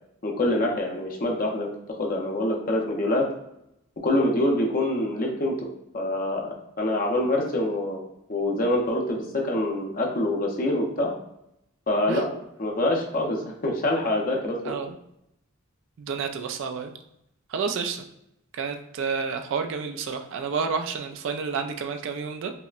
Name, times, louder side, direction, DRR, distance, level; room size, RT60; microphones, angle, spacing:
voice 1, 0.2-1.7 2.0-3.3 4.0-5.7 5.9-8.0 8.3-11.1 11.9-14.7, left 1 dB, 40° left, 1 dB, 0.6 m, -25 dB
voice 2, 14.6-14.9 16.0-16.9 17.5-18.0 18.5-22.5, right 5 dB, 60° right, 6 dB, 0.3 m, -30 dB
5.4 x 2.0 x 2.4 m, 0.81 s
head